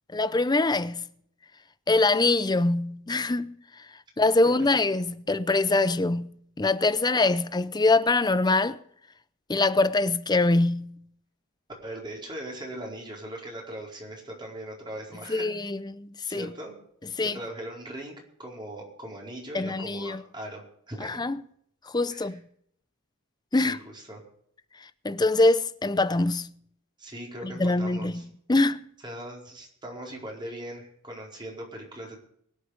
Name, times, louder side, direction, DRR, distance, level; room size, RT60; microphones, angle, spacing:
voice 1, 0.1-1.1 1.9-3.6 4.2-8.8 9.5-11.0 15.3-16.5 17.2-17.4 19.5-20.2 21.0-21.4 21.9-22.4 23.5-23.8 25.0-26.5 27.4-28.2 28.5-28.8, left 2 dB, 20° left, 0.6 m, -24 dB
voice 2, 11.8-15.5 16.2-16.7 17.2-18.1 18.4-20.6 20.9-21.2 22.1-22.4 23.5-24.2 27.0-28.3 29.0-32.2, right 1 dB, 20° right, 4.7 m, -39 dB
23.0 x 8.4 x 5.1 m
head